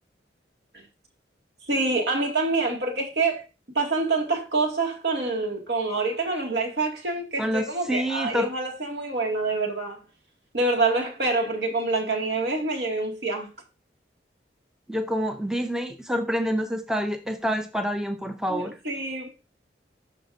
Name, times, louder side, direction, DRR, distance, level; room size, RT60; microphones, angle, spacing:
voice 1, 1.7-3.4 3.7-10.0 10.5-13.5 18.5-19.4, right 3 dB, 70° right, 2.3 m, -26 dB
voice 2, 7.4-8.5 14.9-18.7, equal, 5° right, 0.6 m, -27 dB
12.0 x 5.0 x 2.7 m
head